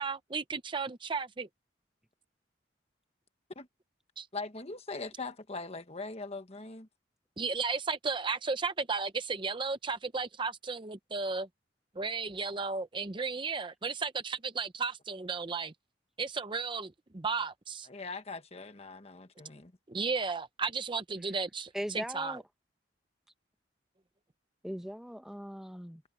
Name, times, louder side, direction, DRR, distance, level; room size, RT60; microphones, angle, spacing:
voice 1, 0.0-1.5 4.2-4.3 7.4-11.5 12.0-15.7 16.2-17.9 19.9-22.4, right 4 dB, 25° right, 0.7 m, -34 dB
voice 2, 4.3-6.9 17.9-19.7, left 3 dB, 35° left, 1.4 m, -41 dB
voice 3, 21.7-22.4 24.6-26.0, equal, ahead, 1.0 m, -39 dB
head